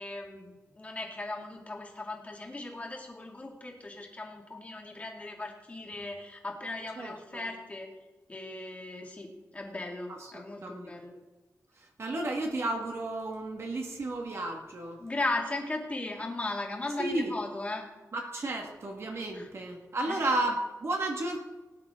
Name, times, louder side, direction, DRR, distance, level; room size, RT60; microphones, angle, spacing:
voice 1, 0.0-7.9 8.3-11.1 15.0-17.9 19.3-19.5 20.1-20.3, left 2 dB, 25° left, 0 dB, 2.2 m, -37 dB
voice 2, 7.0-7.5 10.1-10.9 11.8-15.0 17.0-17.3 18.1-21.4, right 2 dB, 50° right, 1 dB, 1.7 m, -33 dB
18.5 x 10.5 x 3.7 m, 1.1 s
wide cardioid pair, 180°, 6 cm